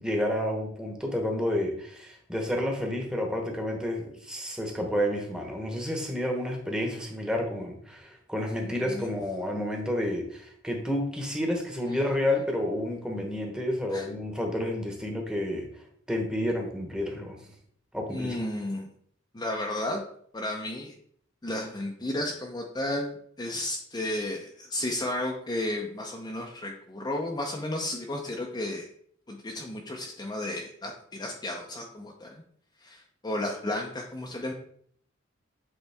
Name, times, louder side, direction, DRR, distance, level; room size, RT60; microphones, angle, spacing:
voice 1, 0.0-15.7 16.1-17.4 17.9-18.4, left 1 dB, 5° right, 1 dB, 1.0 m, -30 dB
voice 2, 8.4-9.1 13.9-14.1 18.1-18.9 19.3-20.0 20.3-20.9 21.4-28.9 29.3-32.4 32.8-34.5, left 1 dB, 20° left, 0 dB, 0.6 m, -33 dB
8.1 x 3.6 x 3.4 m, 0.63 s
head